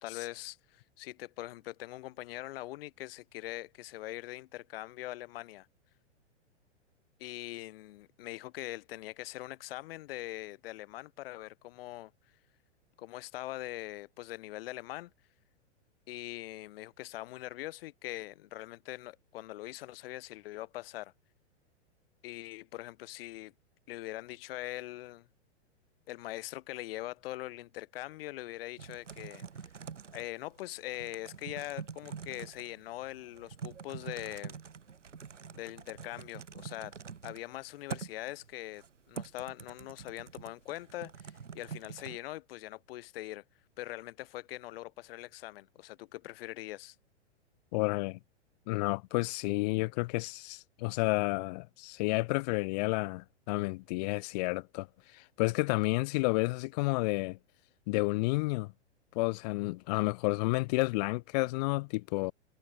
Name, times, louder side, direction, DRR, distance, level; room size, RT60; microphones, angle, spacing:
voice 1, 0.0-5.7 7.2-12.1 13.0-15.1 16.1-21.1 22.2-23.5 23.9-25.3 26.1-29.4 30.1-34.6 35.5-37.0 37.2-43.4 43.8-47.0, left 17 dB, 55° left, 1.0 m, -42 dB
Typing, 28.8-42.2, right 6 dB, 90° right, 3.3 m, -46 dB
voice 2, 47.7-48.2 48.7-54.9 55.1-57.4 57.9-58.7 59.1-62.3, left 24 dB, 35° left, 0.5 m, -31 dB
hypercardioid pair, 115°, 35 cm